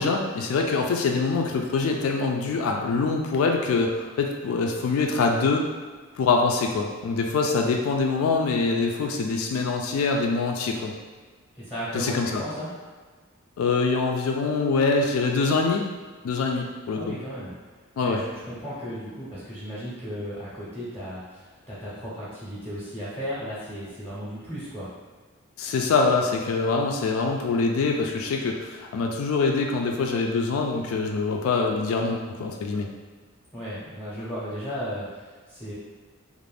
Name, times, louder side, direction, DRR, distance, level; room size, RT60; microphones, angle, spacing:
voice 1, 0.0-5.7 6.2-10.9 11.9-12.4 13.6-15.9 16.2-17.1 18.0-18.2 25.6-32.9, left 4 dB, 75° left, 3 dB, 0.3 m, -24 dB
voice 2, 11.5-12.7 16.9-17.5 18.0-24.9 33.5-35.7, equal, 5° left, -11 dB, 0.6 m, -35 dB
2.5 x 2.0 x 3.2 m, 1.5 s
head